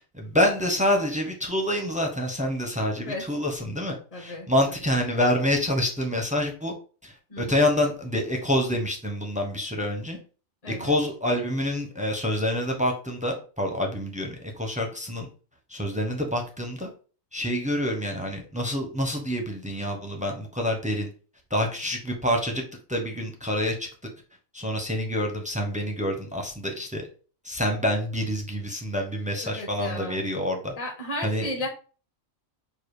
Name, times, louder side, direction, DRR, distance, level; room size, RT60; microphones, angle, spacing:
voice 1, 0.0-6.7 7.0-10.2 10.7-15.3 15.7-16.9 17.3-21.1 21.5-22.6 22.9-23.9 24.5-27.1 27.4-30.7 31.2-31.5, left 1 dB, 10° right, 3 dB, 0.5 m, -27 dB
voice 2, 4.1-4.5 7.3-7.6 10.6-11.0 29.4-30.2 30.8-31.7, left 1 dB, 30° left, 1 dB, 0.8 m, -34 dB
4.7 x 2.3 x 4.7 m, 0.37 s
omnidirectional pair, 1.4 m